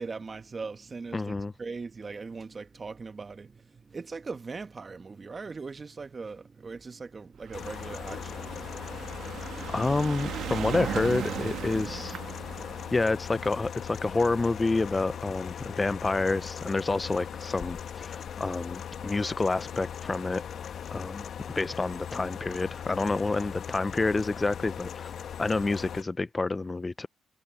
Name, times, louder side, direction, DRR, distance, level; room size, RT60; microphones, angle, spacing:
voice 1, 0.0-9.2 12.5-12.7, right 4 dB, 35° right, 1.6 m, -40 dB
voice 2, 1.1-1.5 9.7-12.2 12.9-20.4 20.9-21.3 21.6-25.1 25.4-27.1, left 3 dB, 20° left, 0.4 m, -28 dB
sound 1, 7.4-15.9 16.7-16.8 17.0-17.1 17.3-17.4, right 10 dB, 75° right, 1.2 m, -38 dB
sound 2, 7.5-26.0, left 8 dB, 60° left, 1.1 m, -39 dB
cardioid pair, 90°, 0 cm